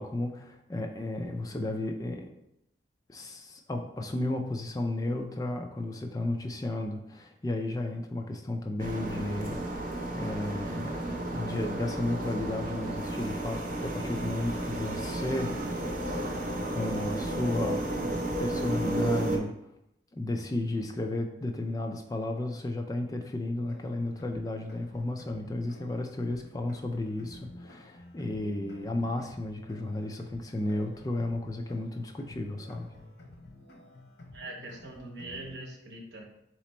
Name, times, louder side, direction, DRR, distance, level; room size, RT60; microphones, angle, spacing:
voice 1, 0.0-2.3 3.1-11.0 11.3-15.5 16.7-17.8 18.4-19.5 20.1-32.9, left 2 dB, 20° left, 4 dB, 0.3 m, -33 dB
sound 1, 8.8-19.4, right 1 dB, 45° right, 0.6 m, -33 dB
sound 2, 23.5-35.5, left 1 dB, 75° left, 0.9 m, -50 dB
voice 2, 34.3-36.2, right 2 dB, 75° right, -1 dB, 1.0 m, -42 dB
4.2 x 3.0 x 4.2 m, 0.84 s
head